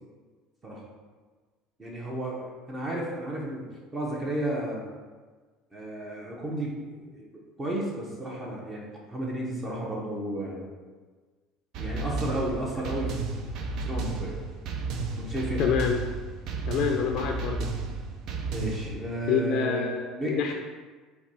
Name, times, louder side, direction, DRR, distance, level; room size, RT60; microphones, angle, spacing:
voice 1, 1.8-3.7 3.9-4.8 5.7-7.3 7.6-10.7 11.8-13.1 13.8-14.3 15.2-15.6 18.5-20.5, right 1 dB, 25° right, -3 dB, 1.0 m, -33 dB
sound 1, 11.7-19.0, right 3 dB, 60° right, 0.5 m, -33 dB
voice 2, 15.6-16.0 16.7-17.7 19.3-20.5, left 6 dB, 60° left, 2 dB, 0.4 m, -27 dB
4.4 x 2.3 x 4.3 m, 1.4 s
supercardioid pair, 105°, 0 cm